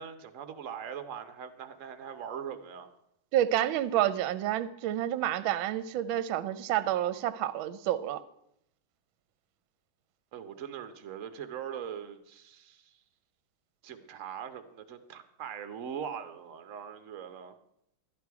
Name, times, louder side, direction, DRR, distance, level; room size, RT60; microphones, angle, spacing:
voice 1, 0.0-2.9 10.3-13.0 13.8-17.5, right 8 dB, 55° right, 9 dB, 0.9 m, -41 dB
voice 2, 3.3-8.2, right 12 dB, 75° right, 14 dB, 1.4 m, -29 dB
13.0 x 10.0 x 4.7 m, 0.76 s
omnidirectional pair, 2.3 m